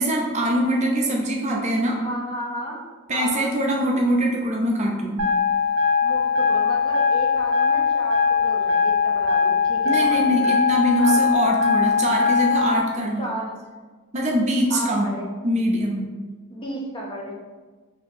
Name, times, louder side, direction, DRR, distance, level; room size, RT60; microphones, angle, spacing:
voice 1, 0.0-2.0 3.1-5.2 9.8-13.3 14.1-15.1 15.4-16.1, equal, 35° right, -1 dB, 0.5 m, -23 dB
voice 2, 1.9-2.8 3.1-3.5 6.0-10.5 11.0-11.2 13.2-13.6 14.7-15.3 16.5-17.4, equal, 25° left, -3 dB, 0.6 m, -33 dB
sound 1, 5.2-12.8, left 5 dB, 90° right, 0.5 m, -20 dB
4.2 x 2.7 x 2.6 m, 1.4 s
head